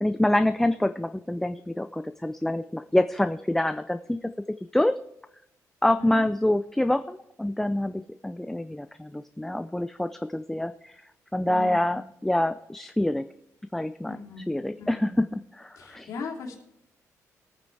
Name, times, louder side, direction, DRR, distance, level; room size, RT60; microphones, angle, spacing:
voice 1, 0.0-4.3 4.7-5.0 5.8-11.0 11.3-13.3 13.7-16.1, left 1 dB, 5° left, 9 dB, 0.4 m, -26 dB
voice 2, 11.4-12.0 14.1-15.2 15.8-16.6, left 4 dB, 70° left, 0 dB, 3.0 m, -39 dB
21.5 x 9.4 x 3.3 m, 0.82 s
cardioid pair, 140°, 6 cm